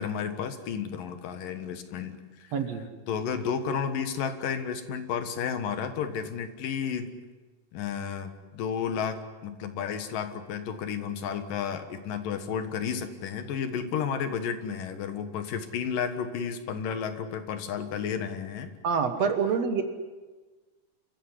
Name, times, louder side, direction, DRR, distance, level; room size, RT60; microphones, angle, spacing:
voice 1, 0.0-2.5 3.1-7.1 7.7-18.7, left 7 dB, 85° left, 9 dB, 3.2 m, -32 dB
voice 2, 2.5-2.9 18.8-19.8, right 6 dB, 60° right, 8 dB, 2.3 m, -26 dB
27.5 x 15.0 x 10.0 m, 1.3 s
omnidirectional pair, 3.8 m